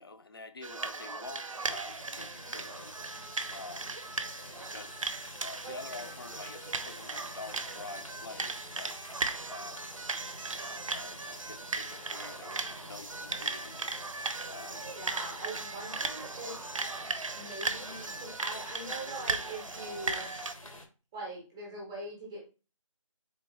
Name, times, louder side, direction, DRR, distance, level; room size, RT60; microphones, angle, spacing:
voice 1, 0.0-3.0 3.5-4.0 4.4-5.0 5.4-9.0 9.5-9.9 10.5-13.8 14.4-14.9, left 3 dB, 45° left, 0.5 m, -47 dB
sound 1, 0.6-20.5, right 3 dB, 75° right, 0.5 m, -37 dB
sound 2, 1.6-20.9, left 1 dB, 90° left, 1.0 m, -48 dB
voice 2, 5.6-6.1 14.9-16.7 17.3-20.3 21.1-22.4, right 1 dB, 5° right, 0.6 m, -42 dB
3.7 x 3.4 x 3.0 m
figure-of-eight pair, 160°, 17 cm